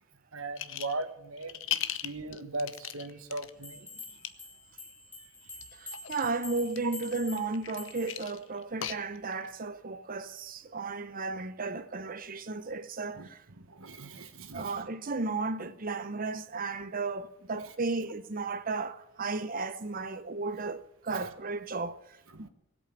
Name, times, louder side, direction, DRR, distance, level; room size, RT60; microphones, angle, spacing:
voice 1, 0.3-3.9 13.1-13.3 13.6-14.8 22.3-22.5, right 2 dB, 75° right, 1.4 m, -39 dB
sound 1, 0.6-1.0 1.4-3.5 4.0-4.3 5.5-6.3 6.7-9.5, left 11 dB, 60° left, 0.8 m, -37 dB
sound 2, 3.6-8.3, left 3 dB, 5° left, 2.5 m, -46 dB
voice 2, 5.7-13.4 14.5-22.5, right 3 dB, 40° right, 0.7 m, -34 dB
19.5 x 8.5 x 8.8 m
head